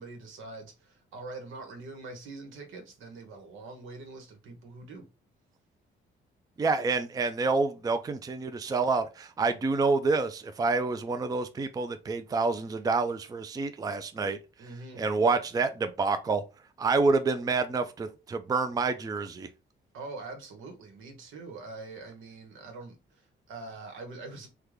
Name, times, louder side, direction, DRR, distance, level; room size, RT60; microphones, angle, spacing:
voice 1, 0.0-5.1 14.6-15.0 19.9-24.5, right 3 dB, 85° right, 1.1 m, -44 dB
voice 2, 6.6-14.4 15.0-16.4 16.8-19.5, right 4 dB, 20° right, 0.4 m, -28 dB
3.5 x 2.2 x 3.1 m
cardioid pair, 90°, 20 cm